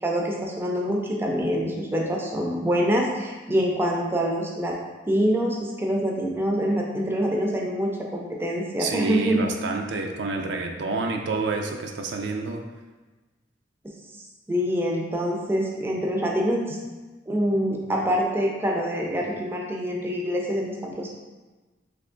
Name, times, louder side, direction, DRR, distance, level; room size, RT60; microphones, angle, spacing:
voice 1, 0.0-4.8 5.1-9.5 13.8-14.0 14.5-16.8 17.3-21.1, equal, 15° right, -1 dB, 0.4 m, -25 dB
voice 2, 8.8-12.6, right 3 dB, 70° right, 3 dB, 0.4 m, -28 dB
3.4 x 2.8 x 3.7 m, 1.2 s
head